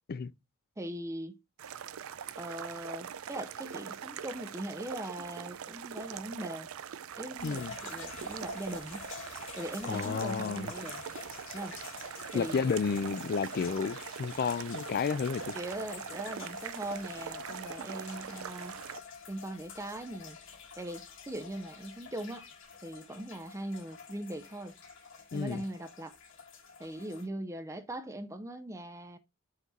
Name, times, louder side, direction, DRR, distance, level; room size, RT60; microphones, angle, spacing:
voice 1, 0.8-1.4 2.4-6.7 7.1-9.0 9.5-11.0 11.5-11.8 12.3-12.6 15.5-18.7 19.3-20.4 20.8-22.5 22.8-24.7 25.3-26.1 26.8-29.2, right 1 dB, 15° right, 0.6 m, -40 dB
sound 1, 1.6-19.0, right 8 dB, 80° right, 0.5 m, -42 dB
sound 2, 7.4-27.3, left 5 dB, 65° left, 1.6 m, -48 dB
voice 2, 7.4-7.7 9.8-10.7 12.3-15.6 25.3-25.6, left 5 dB, 45° left, 0.4 m, -31 dB
sound 3, 11.8-22.7, left 5 dB, 80° left, 2.9 m, -60 dB
5.8 x 4.5 x 4.0 m
head